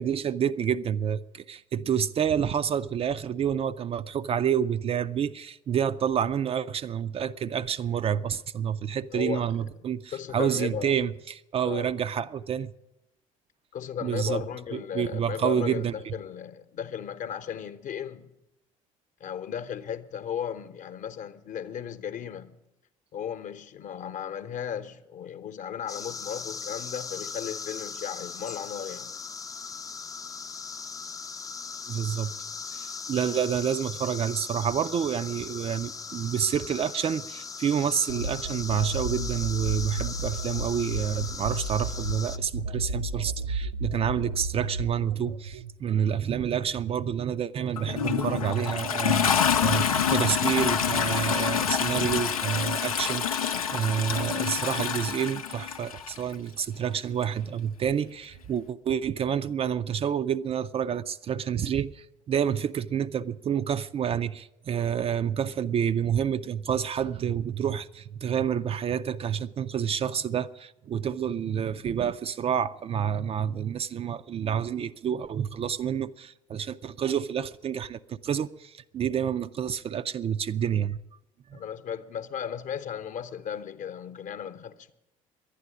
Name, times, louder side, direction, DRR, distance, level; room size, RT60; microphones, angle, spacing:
voice 1, 0.0-12.7 14.0-14.4 14.7-16.1 31.9-32.3 32.7-81.0 81.5-81.6, right 8 dB, 35° right, 0.4 m, -28 dB
voice 2, 9.1-9.7 10.1-11.0 11.6-11.9 13.7-18.3 19.2-22.6 23.1-29.2 81.5-84.9, left 8 dB, 45° left, 0.9 m, -35 dB
sound 1, 25.9-42.4, left 5 dB, 20° left, 0.5 m, -39 dB
sound 2, 38.1-45.7, right 3 dB, 75° right, 0.7 m, -33 dB
Toilet flush, 47.8-56.2 57.2-57.3, left 8 dB, 80° left, 0.6 m, -27 dB
11.0 x 9.9 x 9.9 m
figure-of-eight pair, 55°, 18 cm